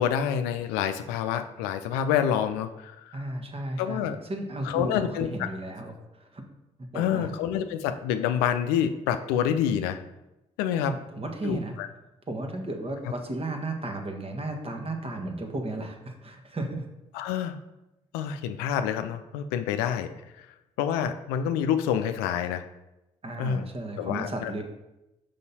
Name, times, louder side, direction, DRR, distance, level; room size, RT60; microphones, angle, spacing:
voice 1, 0.0-3.2 3.8-4.2 4.6-5.3 6.9-10.0 10.6-11.0 11.4-11.9 17.1-17.6 18.1-20.1 20.8-22.6 23.4-23.7 24.0-24.5, left 9 dB, 80° left, 9 dB, 0.4 m, -27 dB
voice 2, 3.1-6.4 6.8-7.3 10.8-11.8 12.3-16.8 23.2-24.6, right 2 dB, 40° right, 4 dB, 1.4 m, -34 dB
5.4 x 5.3 x 4.1 m, 0.95 s
hypercardioid pair, 40°, 16 cm